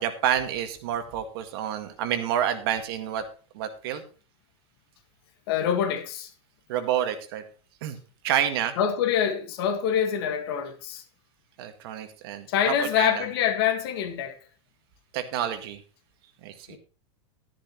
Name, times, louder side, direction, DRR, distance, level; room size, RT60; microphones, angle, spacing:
voice 1, 0.0-3.2 3.5-4.0 6.7-7.4 7.8-8.0 8.2-8.7 11.6-13.2 15.1-15.8 16.4-16.8, right 10 dB, 50° right, 1.9 m, -28 dB
voice 2, 5.5-6.3 8.8-11.0 12.5-14.4 16.7-16.8, left 8 dB, 50° left, 1.9 m, -25 dB
13.0 x 11.0 x 3.1 m
supercardioid pair, 170°, 16 cm